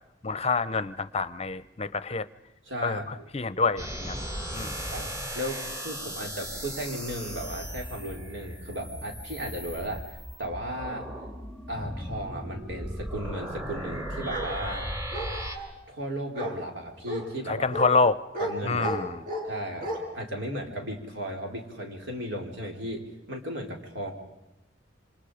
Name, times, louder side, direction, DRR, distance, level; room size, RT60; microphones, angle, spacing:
voice 1, 0.2-2.3 2.8-4.3 4.5-4.8 17.5-18.2 18.6-19.2, left 4 dB, 35° left, 16 dB, 0.7 m, -27 dB
voice 2, 2.7-3.0 4.5-5.1 5.3-11.1 11.7-14.9 15.9-17.7 18.4-18.9 19.5-19.9 20.1-24.1, equal, 70° right, 2 dB, 4.5 m, -35 dB
sound 1, 3.8-15.6, equal, 15° right, 2.9 m, -37 dB
Bark, 14.3-14.5 15.1-15.7 16.3-16.5 17.1-17.2 17.7-17.9 18.3-18.5 18.8-19.5 19.8-20.0, right 1 dB, 50° right, 5.9 m, -32 dB
28.0 x 26.0 x 5.1 m, 0.94 s
head